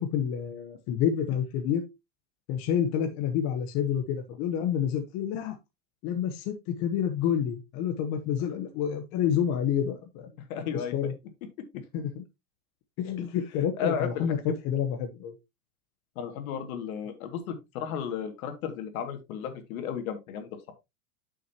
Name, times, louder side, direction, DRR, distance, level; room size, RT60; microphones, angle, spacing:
voice 1, 0.0-1.8 2.5-5.6 6.0-10.3 10.7-11.1 11.9-12.2 13.0-15.3, left 9 dB, 35° left, 6 dB, 1.0 m, -28 dB
voice 2, 10.5-10.9 13.8-14.2 16.2-20.7, left 7 dB, 60° left, 7 dB, 2.3 m, -34 dB
9.1 x 6.3 x 2.9 m, 0.23 s
supercardioid pair, 145°, 47 cm